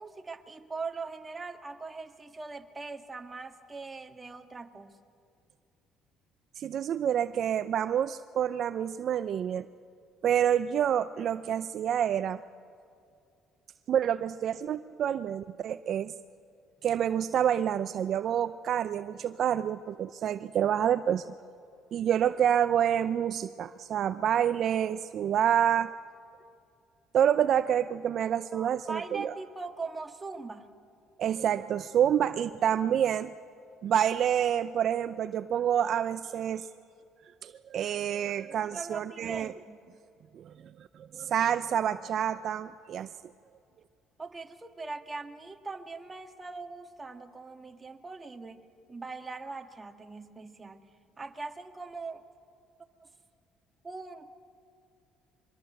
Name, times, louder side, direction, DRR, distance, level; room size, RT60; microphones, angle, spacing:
voice 1, 0.0-5.0 28.5-30.7 38.5-39.9 44.2-50.8 51.2-52.2 53.0-53.1 53.8-54.3, right 4 dB, 20° right, 5 dB, 1.7 m, -41 dB
voice 2, 6.6-9.7 10.2-12.4 13.9-16.1 16.8-21.2 21.9-25.9 27.1-29.3 31.2-33.3 33.8-36.7 37.4-39.5 40.3-40.5 41.1-43.1, right 9 dB, 60° right, 12 dB, 0.5 m, -28 dB
23.5 x 22.0 x 7.8 m, 2.5 s
supercardioid pair, 85°, 0 cm